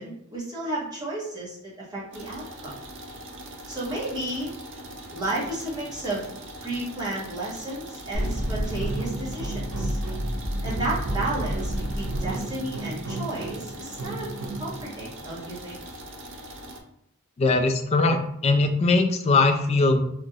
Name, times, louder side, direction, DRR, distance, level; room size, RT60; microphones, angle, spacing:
voice 1, 0.0-2.8 3.7-4.5 5.1-6.3 6.6-10.0 10.6-14.3 14.6-15.8, right 2 dB, 20° right, -7 dB, 0.8 m, -32 dB
sound 1, 2.1-16.8, right 1 dB, 55° right, 0.5 m, -42 dB
sound 2, 8.1-14.8, right 1 dB, 85° right, 0.8 m, -30 dB
voice 2, 17.4-20.0, left 3 dB, 30° left, 5 dB, 0.3 m, -21 dB
3.0 x 2.4 x 2.7 m, 0.69 s
head